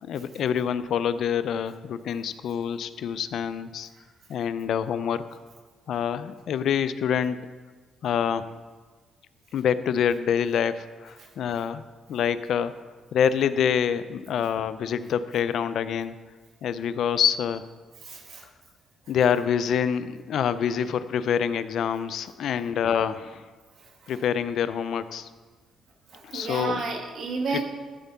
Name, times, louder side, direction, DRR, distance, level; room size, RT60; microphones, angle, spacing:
voice 1, 0.0-3.9 4.3-5.3 5.9-7.4 8.0-8.5 9.5-11.8 12.1-12.7 13.1-16.1 16.6-17.6 19.1-23.4 24.1-25.3 26.2-26.8 27.5-27.6, left 8 dB, 70° left, 13 dB, 0.4 m, -26 dB
voice 2, 18.0-18.4 24.1-24.2 26.1-27.6, right 4 dB, 65° right, 0 dB, 1.5 m, -31 dB
13.5 x 4.6 x 5.5 m, 1.4 s
cardioid pair, 90°, 0 cm